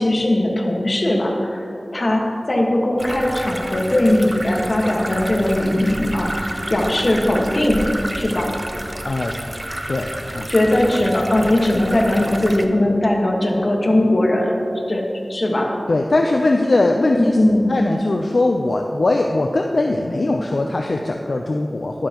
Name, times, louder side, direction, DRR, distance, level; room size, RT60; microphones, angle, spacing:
voice 1, 0.0-1.6 1.9-2.2 2.5-7.8 8.1-8.5 10.5-14.6 14.9-15.0 15.3-15.7 17.1-17.8, left 1 dB, 55° left, 0 dB, 1.6 m, -19 dB
sound 1, 3.0-12.7, right 1 dB, 25° right, 0.6 m, -30 dB
voice 2, 9.0-9.4 9.9-10.5 15.9-22.1, left 2 dB, 75° left, 2 dB, 0.5 m, -20 dB
12.0 x 11.5 x 3.0 m, 2.7 s
wide cardioid pair, 60°, 0 cm